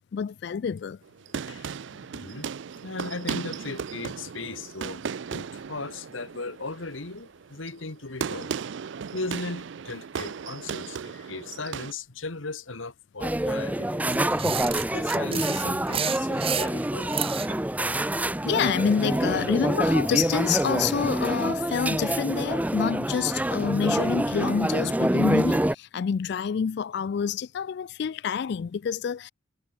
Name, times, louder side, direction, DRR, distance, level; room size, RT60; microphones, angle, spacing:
voice 1, 0.1-1.0 18.4-29.3, left 7 dB, 55° left, 0.3 m, -27 dB
sound 1, 1.0-11.9, right 6 dB, 65° right, 0.4 m, -36 dB
voice 2, 1.4-1.8 2.1-2.5 2.8-5.1 5.3-8.5 9.1-14.5 14.9-17.2 18.4-18.5, left 3 dB, 80° left, 1.9 m, -37 dB
sound 2, 13.2-25.7, right 1 dB, 10° right, 0.6 m, -26 dB
sound 3, 14.1-17.6, right 9 dB, 30° right, 0.9 m, -31 dB
head